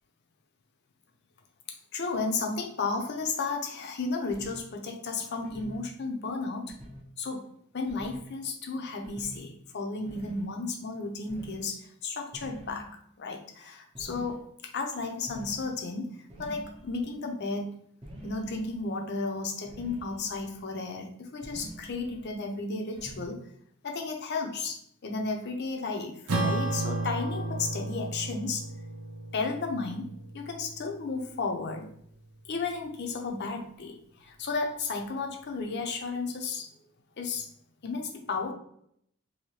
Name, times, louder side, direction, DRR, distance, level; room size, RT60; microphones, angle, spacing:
voice 1, 1.7-6.8 7.2-7.5 7.7-12.9 13.2-17.8 18.2-23.4 23.8-28.7 29.3-31.9 32.4-36.8 37.2-37.5 37.8-38.5, left 3 dB, 50° left, 3 dB, 0.5 m, -33 dB
sound 1, 4.3-4.6 5.4-5.8 6.7-7.0 7.9-8.2 9.0-9.4 10.1-10.5 11.3-11.6 12.3-12.9 13.9-14.4 15.3-15.7 16.3-17.2 18.0-18.9 19.7-20.6 21.4-22.4 22.9-23.3, equal, 25° right, 0.6 m, -45 dB
Acoustic guitar / Strum, 26.3-31.0, right 2 dB, 85° right, 0.7 m, -33 dB
2.8 x 2.7 x 3.1 m, 0.69 s
head